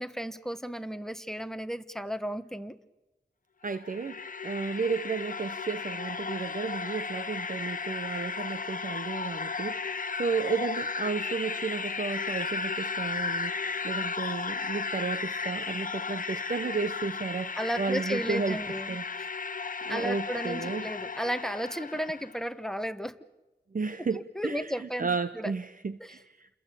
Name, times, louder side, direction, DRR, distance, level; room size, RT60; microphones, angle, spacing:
voice 1, 0.0-2.8 17.6-19.3 19.9-23.1 24.1-25.1 25.3-25.5 26.0-26.1, equal, 5° left, 12 dB, 1.3 m, -34 dB
sound 1, 3.6-22.3, left 5 dB, 50° left, 1.0 m, -34 dB
voice 2, 3.6-18.6 18.9-19.0 19.9-20.9 23.7-26.5, right 4 dB, 50° right, 12 dB, 0.9 m, -33 dB
30.0 x 21.5 x 8.5 m, 1.0 s
wide cardioid pair, 90°, 18 cm